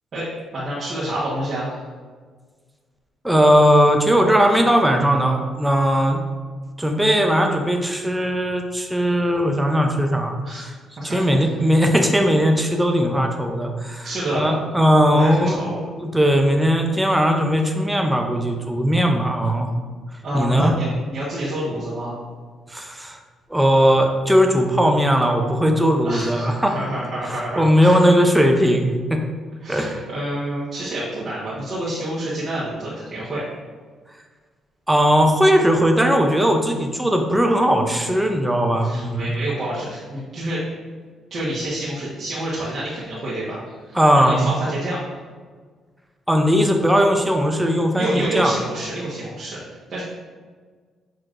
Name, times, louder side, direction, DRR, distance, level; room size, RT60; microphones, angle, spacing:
voice 1, 0.1-1.9 10.4-10.6 11.0-11.2 14.0-14.5 15.1-15.8 20.2-22.2 26.0-28.0 29.6-33.4 38.8-40.7 41.3-45.2 47.9-50.0, right 1 dB, 50° right, -10 dB, 1.2 m, -28 dB
voice 2, 3.2-6.2 6.8-10.3 10.6-10.7 11.0-15.6 16.0-19.7 20.3-20.7 22.7-23.2 23.5-26.7 27.3-29.2 29.7-30.0 34.9-39.3 43.9-44.5 46.3-48.5, equal, 5° right, 3 dB, 0.6 m, -18 dB
6.4 x 3.0 x 2.5 m, 1.5 s
cardioid pair, 90°, 0 cm